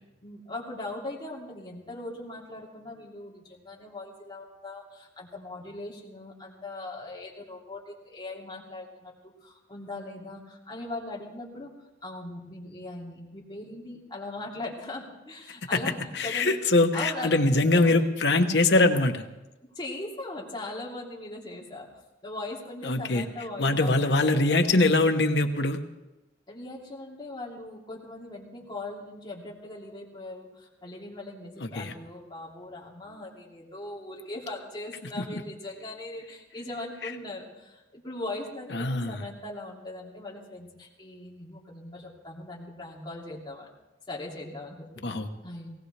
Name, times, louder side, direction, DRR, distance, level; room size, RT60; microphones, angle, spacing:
voice 1, 0.2-11.7 12.0-16.6 16.9-17.4 17.7-17.9 19.8-21.9 22.2-24.8 26.5-43.7 44.1-45.0 45.4-45.7, left 2 dB, 25° left, -3 dB, 2.8 m, -40 dB
voice 2, 16.1-19.2 22.8-23.2 23.6-25.8 31.6-31.9 35.2-35.4 37.0-37.1 38.7-39.2 45.0-45.3, left 2 dB, 70° left, 6 dB, 1.1 m, -23 dB
19.0 x 18.0 x 3.4 m, 0.99 s
head